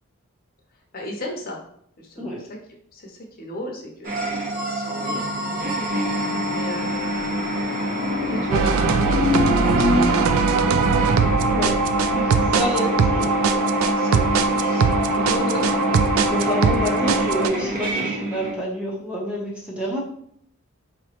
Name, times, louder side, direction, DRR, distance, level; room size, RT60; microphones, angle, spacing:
voice 1, 0.9-1.6 2.0-2.6 2.9-5.9 6.5-7.6 8.3-11.1 12.5-13.3 13.9-15.9 18.1-18.3, left 1 dB, 40° left, 0 dB, 0.7 m, -35 dB
sound 1, 4.0-18.5, left 1 dB, 40° right, 0.8 m, -26 dB
sound 2, 5.0-10.2, left 3 dB, 75° left, 0.8 m, -28 dB
sound 3, 8.5-17.5, right 6 dB, 70° right, 0.3 m, -21 dB
voice 2, 12.1-13.3 16.3-20.0, left 1 dB, 5° right, -3 dB, 0.7 m, -28 dB
4.6 x 3.0 x 2.9 m, 0.67 s
head